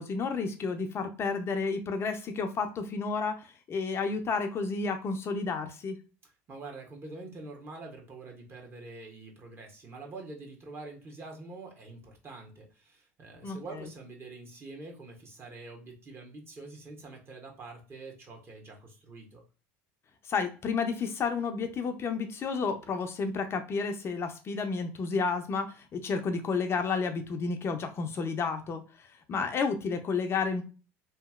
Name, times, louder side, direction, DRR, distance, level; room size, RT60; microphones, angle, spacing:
voice 1, 0.0-6.0 13.4-13.9 20.2-30.6, left 4 dB, 35° left, 6 dB, 0.5 m, -31 dB
voice 2, 6.5-19.4, right 3 dB, 35° right, 1 dB, 1.1 m, -45 dB
2.9 x 2.6 x 2.3 m, 0.35 s
hypercardioid pair, 90°, 7 cm